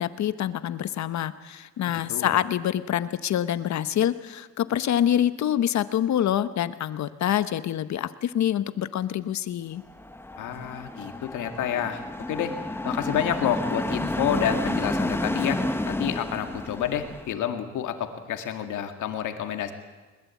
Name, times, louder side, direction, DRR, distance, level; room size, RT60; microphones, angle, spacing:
voice 1, 0.0-9.8, left 11 dB, 65° left, 13 dB, 1.2 m, -26 dB
sound 1, 9.9-17.3, left 1 dB, 10° left, 1.4 m, -30 dB
voice 2, 10.4-12.5 12.8-15.6 15.9-19.7, left 9 dB, 80° left, 6 dB, 2.2 m, -29 dB
21.0 x 20.5 x 8.5 m, 1.3 s
cardioid pair, 90°, 30 cm